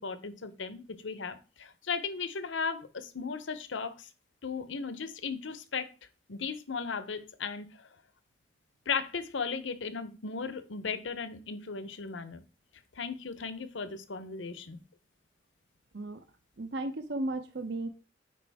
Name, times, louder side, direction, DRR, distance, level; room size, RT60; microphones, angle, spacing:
voice 1, 0.0-4.1 4.4-5.9 6.3-7.9 8.9-12.4 13.0-14.8, left 5 dB, 85° left, 12 dB, 0.8 m, -36 dB
voice 2, 16.6-17.9, right 2 dB, 65° right, 9 dB, 0.6 m, -35 dB
8.4 x 5.0 x 3.5 m, 0.33 s
head